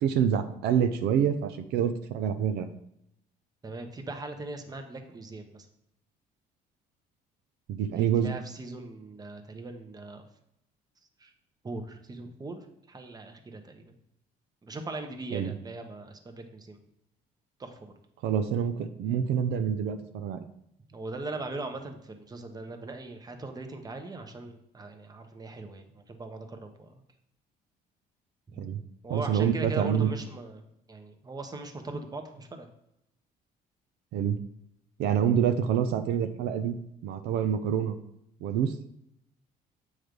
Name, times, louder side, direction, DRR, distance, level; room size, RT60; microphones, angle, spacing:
voice 1, 0.0-2.7 7.7-8.3 15.3-15.5 18.2-20.4 28.6-28.8 29.1-30.1 34.1-34.4 35.0-36.8 37.0-38.0 38.4-38.8, right 8 dB, 80° right, 9 dB, 0.5 m, -27 dB
voice 2, 3.6-5.7 7.9-10.2 11.2-11.3 11.6-13.9 14.6-16.8 17.6-17.9 20.9-27.0 28.5-28.6 29.0-30.6 30.9-32.7, right 2 dB, 20° right, 6 dB, 0.9 m, -40 dB
7.9 x 3.2 x 5.1 m, 0.78 s
cardioid pair, 110°, 17 cm